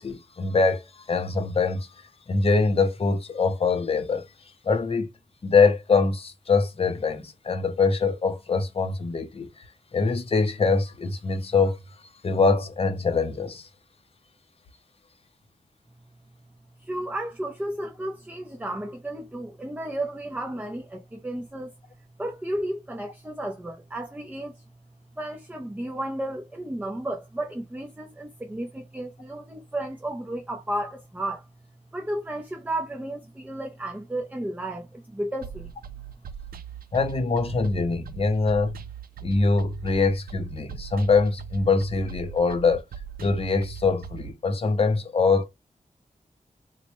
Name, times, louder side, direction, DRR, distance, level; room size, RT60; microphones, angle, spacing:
voice 1, 0.0-1.9 2.3-4.2 4.6-5.1 5.4-9.6 9.9-11.8 12.2-13.7 36.9-38.8 39.2-42.8 43.2-45.5, left 4 dB, 40° left, 0.6 m, -23 dB
voice 2, 16.8-21.7 22.2-24.6 25.2-31.5 31.9-35.7, right 1 dB, 10° right, 0.5 m, -33 dB
sound 1, 35.4-44.3, right 8 dB, 85° right, 0.4 m, -40 dB
4.1 x 2.1 x 2.9 m
wide cardioid pair, 135°, 15 cm